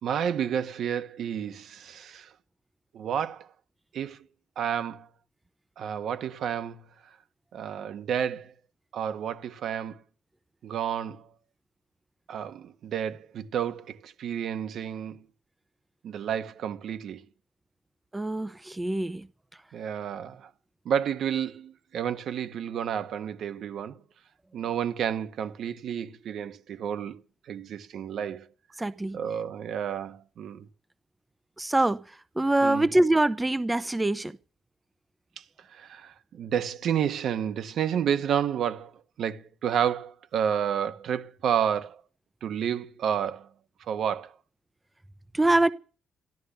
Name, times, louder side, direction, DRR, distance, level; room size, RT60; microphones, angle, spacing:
voice 1, 0.0-2.3 2.9-3.5 3.9-4.2 4.6-5.1 5.8-6.8 7.5-8.5 8.9-10.0 10.6-11.3 12.3-15.2 16.0-17.2 19.7-20.5 20.8-24.0 24.5-27.2 27.5-28.5 29.1-30.7 32.6-32.9 35.7-38.9 39.2-42.0 42.4-43.5 43.9-44.3, right 8 dB, 70° right, 1.5 m, -30 dB
voice 2, 18.1-19.3 28.8-29.2 31.6-32.0 32.4-34.3 45.3-45.7, right 2 dB, 15° right, 0.7 m, -24 dB
13.5 x 12.5 x 6.8 m
cardioid pair, 90°, 0 cm